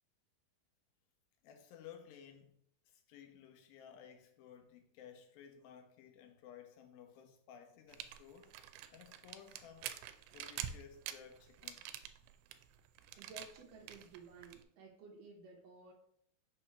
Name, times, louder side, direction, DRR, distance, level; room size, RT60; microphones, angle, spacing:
voice 1, 1.4-2.6 2.9-8.5 8.9-11.9, left 8 dB, 80° left, 2.3 m, -56 dB
sound 1, 7.9-14.6, right 11 dB, 90° right, 2.5 m, -47 dB
voice 2, 13.2-15.9, right 4 dB, 70° right, 2.2 m, -55 dB
6.3 x 2.9 x 5.7 m
omnidirectional pair, 4.4 m